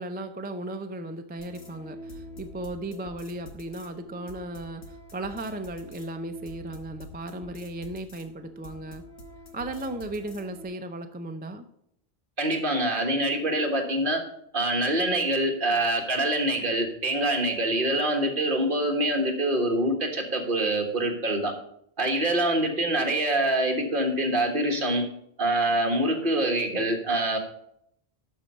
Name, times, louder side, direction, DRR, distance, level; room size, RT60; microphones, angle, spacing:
voice 1, 0.0-9.0 9.5-11.7, right 1 dB, 15° right, 7 dB, 0.3 m, -36 dB
sound 1, 1.4-10.7, left 1 dB, 80° left, 1.5 m, -46 dB
voice 2, 12.4-14.2 14.5-21.5 22.0-25.0 25.4-27.4, right 1 dB, 50° right, 3 dB, 1.6 m, -25 dB
12.0 x 4.6 x 5.3 m, 0.73 s
omnidirectional pair, 1.1 m